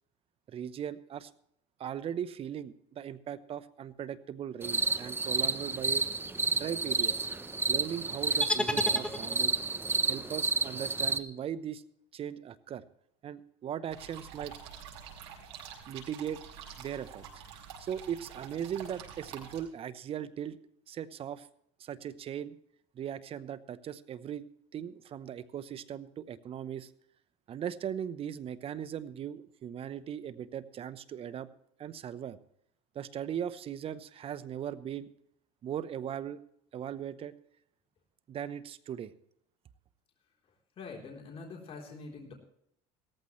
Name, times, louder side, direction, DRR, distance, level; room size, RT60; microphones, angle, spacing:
voice 1, 0.5-1.3 1.8-6.0 6.6-7.3 7.7-9.6 10.1-11.8 12.1-12.8 13.2-14.6 15.9-16.4 16.8-17.3 17.8-20.6 20.9-21.5 21.8-22.6 22.9-26.9 27.5-31.5 31.8-32.4 32.9-35.1 35.6-36.4 36.7-37.4 38.3-39.1, right 9 dB, 40° right, 14 dB, 0.9 m, -38 dB
sound 1, 4.6-11.2, right 4 dB, 15° right, 0.8 m, -30 dB
sound 2, 8.4-9.7, left 1 dB, 5° left, 1.5 m, -32 dB
sound 3, 13.9-19.6, right 7 dB, 85° right, 5.0 m, -47 dB
voice 2, 40.8-42.3, left 4 dB, 40° left, 1 dB, 3.7 m, -44 dB
17.5 x 14.5 x 3.2 m, 0.71 s
supercardioid pair, 105°, 15 cm